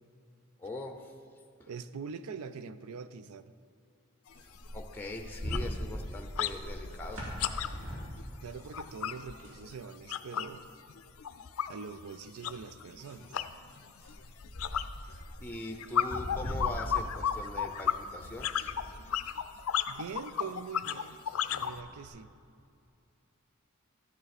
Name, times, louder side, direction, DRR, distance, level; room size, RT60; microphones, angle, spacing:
voice 1, 0.6-1.1 4.7-7.2 14.7-14.8 15.4-18.7, left 1 dB, 10° left, 3 dB, 0.6 m, -42 dB
voice 2, 1.7-3.5 8.4-10.7 11.7-13.4 19.9-21.2 21.6-22.3, right 5 dB, 85° right, 13 dB, 0.5 m, -43 dB
sound 1, 4.3-4.4 4.7-4.9 5.2-6.6 6.8-10.6 10.9-21.8, left 9 dB, 75° left, 0.4 m, -34 dB
sound 2, 4.3-9.6 10.0-10.1 10.5-11.3 11.8-18.3 18.6-22.1, equal, 65° right, 2.9 m, -42 dB
12.5 x 9.2 x 4.2 m, 2.4 s
head